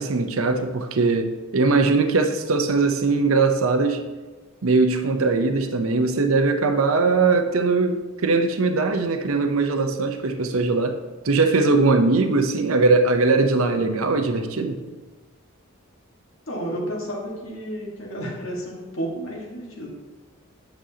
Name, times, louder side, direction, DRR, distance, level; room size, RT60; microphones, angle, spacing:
voice 1, 0.0-4.0 4.6-11.0 11.2-14.8, right 3 dB, 75° right, 6 dB, 0.7 m, -20 dB
voice 2, 16.4-19.9, right 1 dB, 70° left, -2 dB, 1.6 m, -31 dB
8.9 x 6.2 x 2.8 m, 1.3 s
head